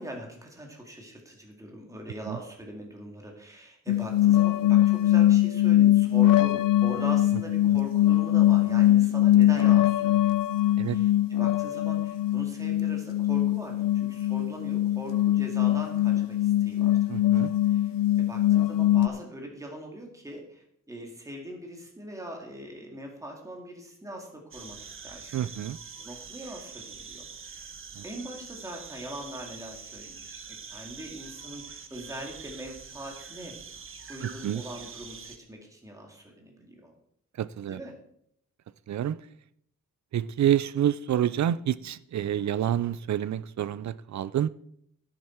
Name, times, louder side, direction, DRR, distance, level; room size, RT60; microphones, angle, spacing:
voice 1, 0.0-10.4 10.8-25.4 26.0-27.7 28.0-33.5 34.1-36.9 37.7-38.0, right 1 dB, 10° right, 2.2 m, -42 dB
sound 1, 3.9-19.1, left 14 dB, 80° left, 0.5 m, -22 dB
voice 2, 17.1-17.5 25.3-25.8 28.0-28.1 34.4-34.6 37.4-37.8 38.9-39.2 40.1-44.5, right 10 dB, 60° right, 0.5 m, -28 dB
sound 2, 24.5-35.4, right 5 dB, 40° right, 0.9 m, -44 dB
11.5 x 9.7 x 4.5 m
wide cardioid pair, 165°, 33 cm